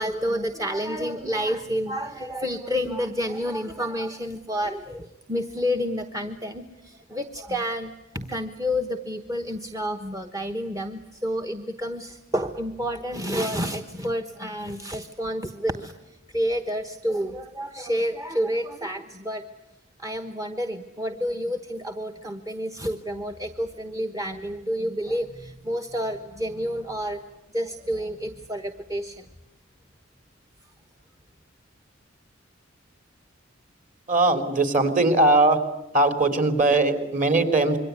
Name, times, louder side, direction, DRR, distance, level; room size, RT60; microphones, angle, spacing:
voice 1, 0.0-15.9 16.3-19.4 20.0-27.2 27.5-29.3, equal, 15° right, 6 dB, 1.1 m, -29 dB
voice 2, 34.1-35.6 35.9-37.8, right 2 dB, 40° right, 8 dB, 3.5 m, -20 dB
27.0 x 23.0 x 9.5 m, 0.91 s
head